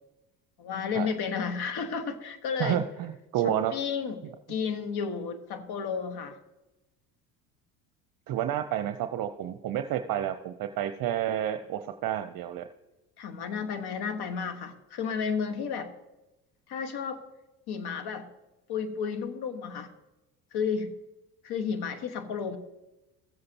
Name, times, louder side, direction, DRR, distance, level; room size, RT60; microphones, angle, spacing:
voice 1, 0.6-2.8 3.4-4.2 4.5-6.4 13.2-15.9 16.7-17.2 17.7-18.3 18.7-19.9 20.5-20.9 21.4-22.6, left 6 dB, 55° left, 9 dB, 1.4 m, -32 dB
voice 2, 2.6-3.7 8.3-12.7, right 11 dB, 45° right, 8 dB, 0.7 m, -30 dB
15.5 x 7.7 x 2.9 m, 0.99 s
hypercardioid pair, 75°, 47 cm